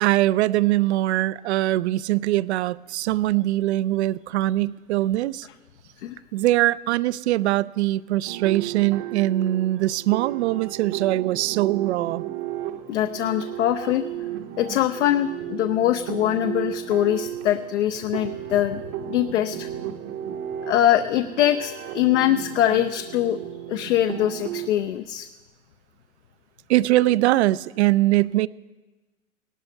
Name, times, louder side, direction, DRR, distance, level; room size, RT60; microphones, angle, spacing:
voice 1, 0.0-5.5 6.3-12.2 26.7-28.5, right 16 dB, 55° right, 0.5 m, -22 dB
sound 1, 8.3-24.7, right 11 dB, 30° right, 0.8 m, -34 dB
voice 2, 12.9-14.0 14.6-18.8 19.1-19.7 20.7-23.4 23.7-25.3, left 12 dB, 60° left, 0.7 m, -23 dB
17.5 x 12.0 x 5.4 m
hypercardioid pair, 125°, 40 cm